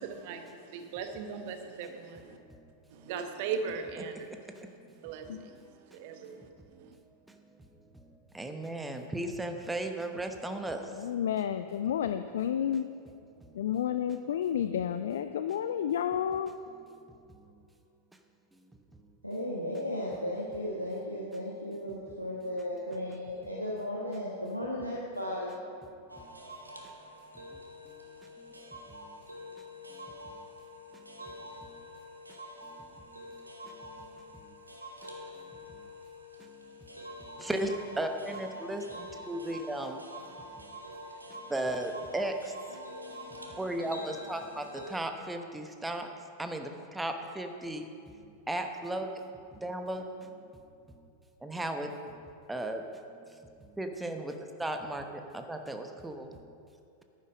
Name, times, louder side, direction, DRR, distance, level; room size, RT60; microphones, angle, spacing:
voice 1, 0.0-2.4 2.9-4.3 5.0-5.6 5.9-6.5 6.8-6.9, right 6 dB, 50° right, 6 dB, 1.1 m, -38 dB
voice 2, 8.3-10.9 13.4-13.5 33.7-34.1 37.4-40.0 41.5-42.5 43.6-46.1 46.4-48.2 48.5-49.1 49.5-50.0 51.4-51.9 52.5-52.8 53.1-53.4 53.7-56.3, right 1 dB, 5° right, 5 dB, 0.9 m, -35 dB
voice 3, 10.9-12.9 13.5-16.5, left 9 dB, 60° left, 10 dB, 0.4 m, -31 dB
voice 4, 19.2-25.6, left 1 dB, 90° left, -4 dB, 1.3 m, -35 dB
sound 1, 26.1-45.0, equal, 85° right, 1.3 m, -46 dB
11.0 x 9.6 x 5.3 m, 2.5 s
figure-of-eight pair, 90°, 0 cm